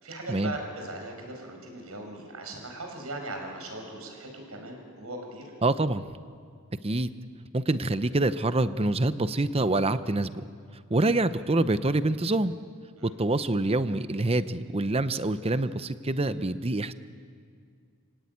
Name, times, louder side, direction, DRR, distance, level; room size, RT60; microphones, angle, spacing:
voice 1, 0.0-5.5 13.0-13.1, right 2 dB, 80° right, 3 dB, 5.7 m, -39 dB
voice 2, 5.6-6.1 6.8-7.1 7.5-10.5 10.9-12.5 13.0-16.9, right 2 dB, 25° right, 13 dB, 0.7 m, -26 dB
29.5 x 17.0 x 9.4 m, 2.2 s
head